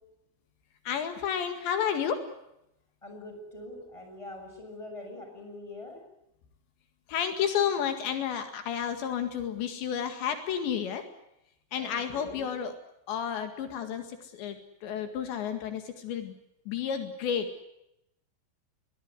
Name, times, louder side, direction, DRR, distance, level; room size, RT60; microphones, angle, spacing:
voice 1, 0.9-2.3 7.1-11.1 11.7-12.7 13.1-16.4 16.7-17.5, left 8 dB, 75° left, 7 dB, 4.3 m, -31 dB
voice 2, 3.0-6.0 11.8-12.5, left 2 dB, 5° left, 3 dB, 7.2 m, -44 dB
23.0 x 20.5 x 9.7 m, 0.83 s
omnidirectional pair, 5.1 m